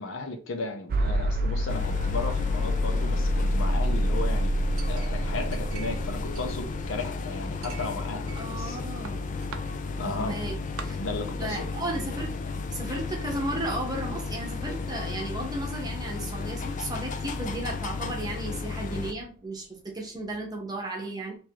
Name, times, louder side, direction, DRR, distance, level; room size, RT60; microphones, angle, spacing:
voice 1, 0.0-4.5 4.9-8.8 10.0-10.4 11.0-11.7, left 3 dB, 60° left, 0.7 m, -35 dB
sound 1, 0.9-16.8, equal, 40° right, 0.4 m, -31 dB
sound 2, 1.7-19.1, left 4 dB, 35° left, 0.3 m, -34 dB
Chink clink, 4.8-6.1 6.4-7.1 7.6-8.8 9.1-9.6 10.3-10.4 10.8-10.9, right 6 dB, 85° right, 0.6 m, -43 dB
voice 2, 8.4-9.3 10.0-11.0 11.4-12.4 12.7-21.4, right 1 dB, 20° right, 0.8 m, -34 dB
3.1 x 2.6 x 4.5 m
head